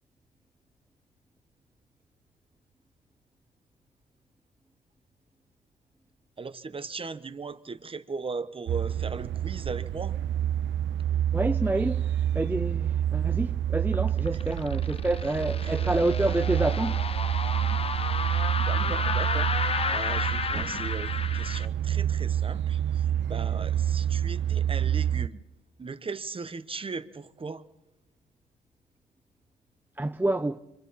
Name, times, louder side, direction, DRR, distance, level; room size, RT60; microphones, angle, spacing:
voice 1, 6.4-10.2 14.3-14.6 15.6-16.5 17.5-17.9 18.6-19.5 19.9-25.4 25.8-27.6, right 4 dB, 25° right, 1.2 m, -38 dB
sound 1, 8.7-25.3, right 10 dB, 70° right, 0.6 m, -28 dB
voice 2, 11.3-17.1 30.0-30.6, right 2 dB, 10° right, 0.6 m, -28 dB
sound 2, 13.9-21.7, left 5 dB, 30° left, 0.9 m, -32 dB
27.0 x 25.0 x 4.3 m
cardioid pair, 90°, 20 cm